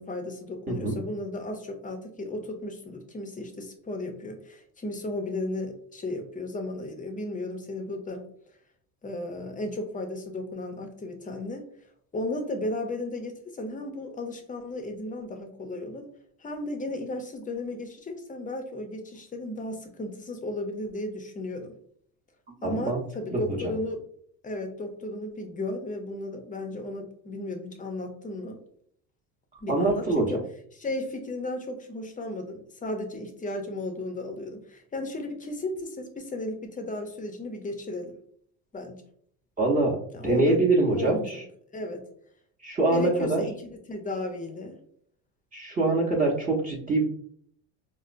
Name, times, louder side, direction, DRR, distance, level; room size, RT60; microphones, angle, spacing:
voice 1, 0.0-8.2 9.0-11.7 12.1-16.1 16.4-21.8 22.6-24.0 24.4-28.6 29.6-30.4 30.8-38.2 38.7-39.0 40.1-41.4 41.7-42.0 42.9-44.8, left 1 dB, 20° left, 5 dB, 0.6 m, -34 dB
voice 2, 0.7-1.0 22.6-23.0 23.3-23.4 29.7-30.3 39.6-41.4 42.6-43.4 45.5-47.0, right 2 dB, 20° right, -2 dB, 0.8 m, -24 dB
4.2 x 2.1 x 2.4 m, 0.64 s
supercardioid pair, 100°, 40 cm